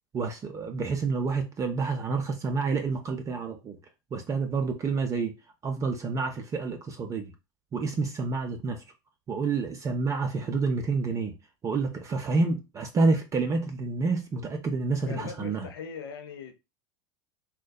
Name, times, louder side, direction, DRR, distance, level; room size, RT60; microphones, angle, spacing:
voice 1, 0.1-3.8 4.1-5.4 5.6-7.3 7.7-8.8 9.3-11.3 11.6-15.7, right 4 dB, 25° right, 0.4 m, -28 dB
voice 2, 15.1-16.5, left 6 dB, 90° left, 0.5 m, -40 dB
2.6 x 2.1 x 2.2 m
hypercardioid pair, 100°, 12 cm